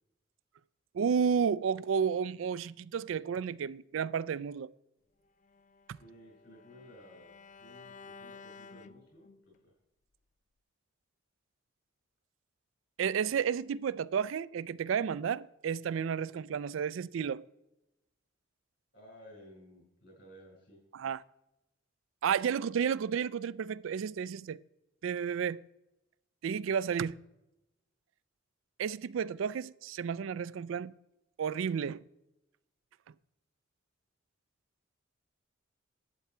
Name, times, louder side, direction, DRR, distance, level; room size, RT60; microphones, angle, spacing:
voice 1, 0.9-4.7 13.0-17.4 20.9-21.2 22.2-24.6 25.0-25.6 26.4-27.2 28.8-30.9 31.4-32.0, right 7 dB, 80° right, 0.3 m, -32 dB
Bowed string instrument, 5.4-9.6, left 4 dB, 40° left, 0.3 m, -53 dB
voice 2, 5.9-7.3 7.6-9.7 18.9-20.8, equal, 55° left, 4.9 m, -55 dB
11.5 x 8.4 x 4.4 m
head